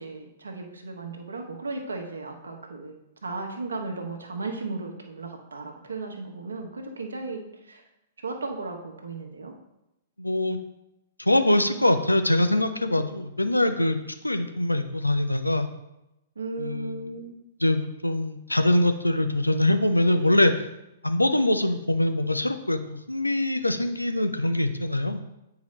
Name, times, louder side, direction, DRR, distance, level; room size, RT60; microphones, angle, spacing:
voice 1, 0.0-2.9 3.2-7.8 8.2-9.5 16.3-17.4, right 3 dB, 75° right, 3 dB, 1.1 m, -35 dB
voice 2, 10.2-10.6 11.2-14.0 14.2-15.7 16.6-17.0 17.6-20.6 21.0-25.2, left 1 dB, 90° left, 8 dB, 0.5 m, -23 dB
8.4 x 4.7 x 3.2 m, 0.89 s
figure-of-eight pair, 110°, 0 cm